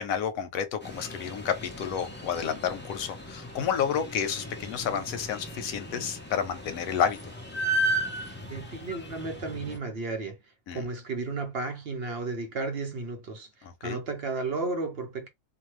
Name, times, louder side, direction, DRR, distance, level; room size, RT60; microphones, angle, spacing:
voice 1, 0.0-7.2 10.7-10.9 13.6-14.0, left 7 dB, 90° left, 1.1 m, -30 dB
sound 1, 0.8-9.8, right 1 dB, 15° left, 0.5 m, -35 dB
voice 2, 8.5-10.4 10.7-13.5 13.8-15.3, right 3 dB, 55° right, 0.8 m, -33 dB
2.8 x 2.2 x 3.0 m
omnidirectional pair, 1.4 m